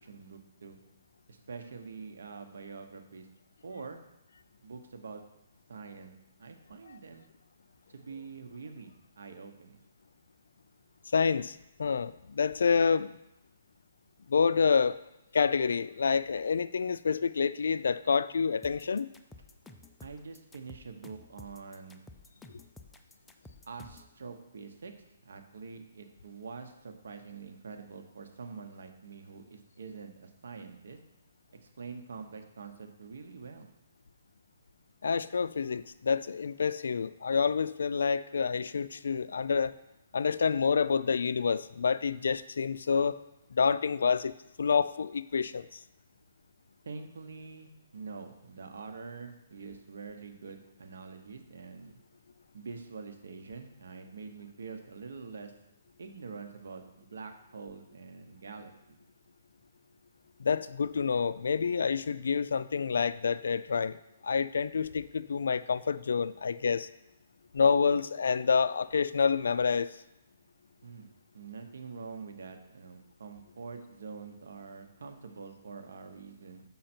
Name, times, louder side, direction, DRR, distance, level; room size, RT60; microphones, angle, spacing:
voice 1, 0.0-0.8 1.3-3.3 3.6-4.0 4.6-5.2 5.7-6.1 6.4-7.3 7.9-9.8 20.0-22.0 23.7-24.9 25.2-31.0 31.6-33.7 46.8-52.0 52.5-55.5 56.0-59.0 70.8-71.1 71.3-76.6, right 5 dB, 80° right, 6 dB, 1.0 m, -45 dB
voice 2, 11.1-13.2 14.3-15.0 15.3-19.1 35.0-39.7 40.1-43.2 43.5-45.8 60.4-64.0 64.2-66.9 67.5-70.0, left 5 dB, 80° left, 16 dB, 0.3 m, -28 dB
sound 1, 18.6-24.1, left 2 dB, 5° left, 0.3 m, -52 dB
6.5 x 5.6 x 4.4 m, 0.88 s
hypercardioid pair, 170°, 0 cm